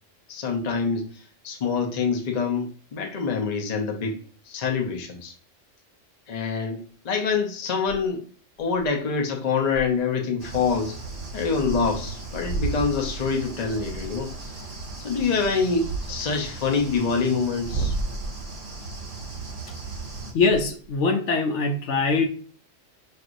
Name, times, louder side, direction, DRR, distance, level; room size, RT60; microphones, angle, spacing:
voice 1, 0.3-1.1 1.4-4.2 4.5-5.3 6.3-8.2 8.6-11.0 11.3-14.3 15.0-18.0, left 5 dB, 45° left, 0.6 m, -26 dB
sound 1, 4.1-4.2 7.8-8.1 8.6-8.9 9.2-9.3 9.7-10.0 10.5-10.6 11.1-11.3 11.6-14.5 15.3-17.0 17.5-18.6 20.0-21.0, right 3 dB, 85° right, 1.0 m, -35 dB
sound 2, 10.4-20.3, right 3 dB, 65° right, 1.4 m, -36 dB
voice 2, 20.3-22.3, left 4 dB, 70° left, 0.9 m, -22 dB
5.9 x 2.6 x 2.5 m
omnidirectional pair, 1.3 m